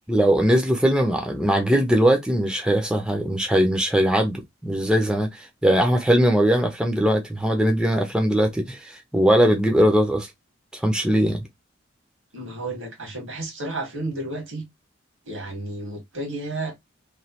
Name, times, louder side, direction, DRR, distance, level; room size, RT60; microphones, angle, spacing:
voice 1, 0.1-10.3 10.7-11.4, equal, 5° right, 0.5 m, -20 dB
voice 2, 12.3-14.7 15.2-16.7, right 2 dB, 85° right, 1.6 m, -32 dB
3.0 x 2.2 x 2.8 m
head